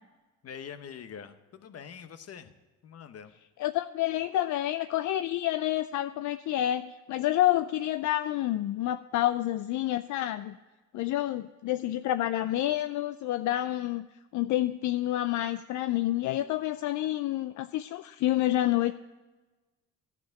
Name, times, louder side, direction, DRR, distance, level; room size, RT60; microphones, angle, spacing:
voice 1, 0.4-2.5 2.8-3.3, left 7 dB, 55° left, 10 dB, 1.0 m, -44 dB
voice 2, 3.6-10.6 10.9-14.1 14.3-18.9, left 14 dB, 75° left, 11 dB, 0.5 m, -28 dB
11.5 x 6.0 x 8.9 m, 1.2 s
cardioid pair, 90°, 30 cm